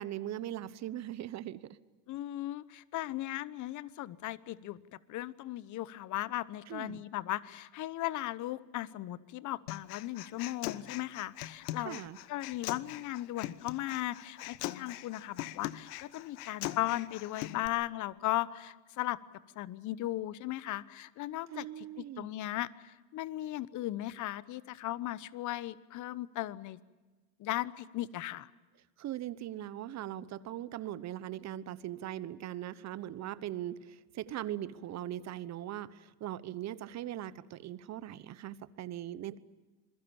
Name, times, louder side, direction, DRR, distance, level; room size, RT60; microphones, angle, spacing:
voice 1, 0.0-1.8 6.7-7.0 11.8-12.2 21.5-22.3 29.0-39.4, right 12 dB, 35° right, 17 dB, 1.1 m, -40 dB
voice 2, 2.1-12.0 12.3-19.2 19.6-26.8 27.4-28.5, left 15 dB, 35° left, 18 dB, 1.0 m, -37 dB
Human voice, 9.7-17.7, left 15 dB, 65° left, 1.3 m, -41 dB
27.0 x 21.5 x 7.1 m, 1.2 s
hypercardioid pair, 105°, 49 cm